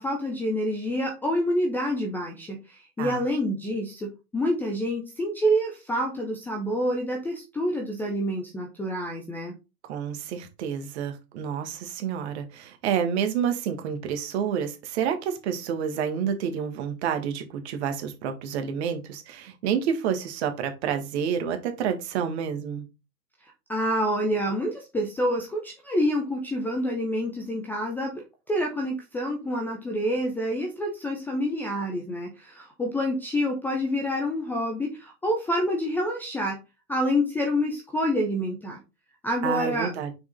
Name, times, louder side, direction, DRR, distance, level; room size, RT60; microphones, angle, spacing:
voice 1, 0.0-9.5 23.7-36.6 36.9-38.8 39.2-39.9, equal, 5° left, 1 dB, 0.6 m, -27 dB
voice 2, 9.8-22.8 39.4-40.1, right 8 dB, 40° right, 7 dB, 1.7 m, -29 dB
6.1 x 4.7 x 3.9 m, 0.27 s
figure-of-eight pair, 115°, 48 cm